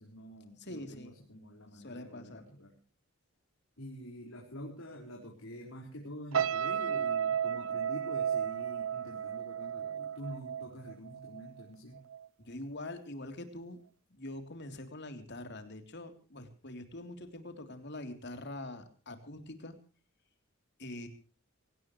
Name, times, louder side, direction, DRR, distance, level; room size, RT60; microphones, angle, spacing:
voice 1, 0.0-2.7 3.8-12.0, equal, 85° left, -1 dB, 4.9 m, -47 dB
voice 2, 0.6-1.1 1.7-2.4 12.4-13.8 14.1-19.8 20.8-21.1, left 1 dB, 55° left, 7 dB, 3.4 m, -44 dB
sound 1, 6.3-11.6 11.9-12.3, right 8 dB, 90° right, 0.8 m, -34 dB
25.0 x 18.0 x 3.2 m, 0.37 s
head